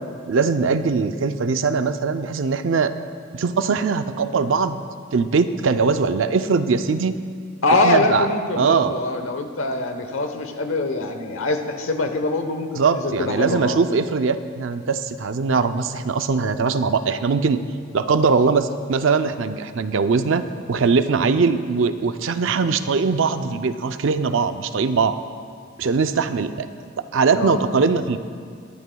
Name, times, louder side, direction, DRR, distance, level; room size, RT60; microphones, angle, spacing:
voice 1, 0.3-2.9 3.3-4.8 5.1-7.2 7.7-8.3 8.6-8.9 12.8-17.6 17.9-25.2 25.8-26.7 27.1-28.2, right 5 dB, 60° right, 10 dB, 0.5 m, -21 dB
voice 2, 7.6-13.8 27.3-27.6, left 2 dB, 70° left, 6 dB, 1.0 m, -23 dB
22.5 x 11.0 x 2.3 m, 2.1 s
head